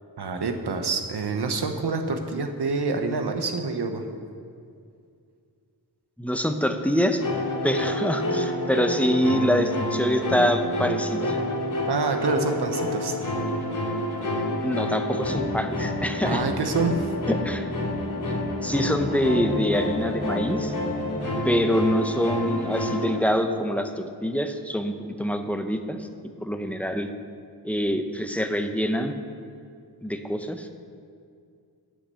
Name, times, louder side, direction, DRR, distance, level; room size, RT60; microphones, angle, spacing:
voice 1, 0.2-4.0 11.9-13.2 16.2-17.1, right 4 dB, 75° right, 6 dB, 1.1 m, -27 dB
voice 2, 6.2-7.2 7.6-11.4 14.6-16.4 17.3-17.7 18.6-20.7 21.4-26.1 26.4-27.1 27.6-29.1 30.0-30.7, equal, 5° left, 6 dB, 0.8 m, -25 dB
sound 1, 7.2-23.2, left 1 dB, 50° left, 3.0 m, -28 dB
8.9 x 8.3 x 6.9 m, 2.3 s
wide cardioid pair, 75°, 40 cm